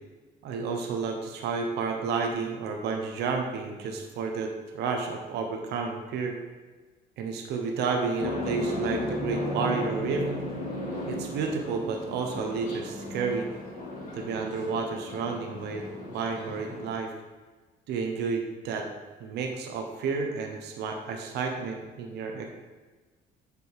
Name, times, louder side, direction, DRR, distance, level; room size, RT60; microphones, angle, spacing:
voice 1, 0.4-6.4 7.2-10.3 11.1-13.5 14.1-17.1 17.9-18.9 19.2-22.5, right 5 dB, 80° right, 3 dB, 1.1 m, -31 dB
sound 1, 8.2-16.9, left 1 dB, 50° left, 2.7 m, -35 dB
8.2 x 5.3 x 4.7 m, 1.3 s
cardioid pair, 110°, 17 cm